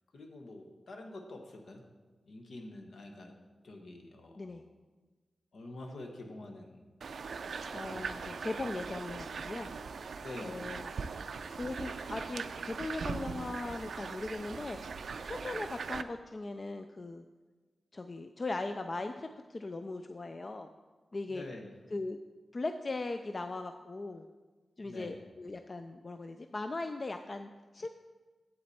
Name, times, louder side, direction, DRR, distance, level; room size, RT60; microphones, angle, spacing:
voice 1, 0.1-1.8 2.3-3.3 3.6-4.7 5.5-6.8 7.4-8.4 10.2-10.7 21.3-21.7 24.8-25.2, left 2 dB, 65° left, 3 dB, 1.2 m, -47 dB
sound 1, 7.0-16.0, right 5 dB, 70° right, 0.3 m, -40 dB
voice 2, 7.5-9.7 10.0-17.2 17.9-20.7 21.1-21.4 21.9-22.2 22.5-24.3 24.8-27.9, left 2 dB, 30° left, 7 dB, 0.3 m, -39 dB
8.3 x 7.9 x 4.2 m, 1.3 s
wide cardioid pair, 160°, 0 cm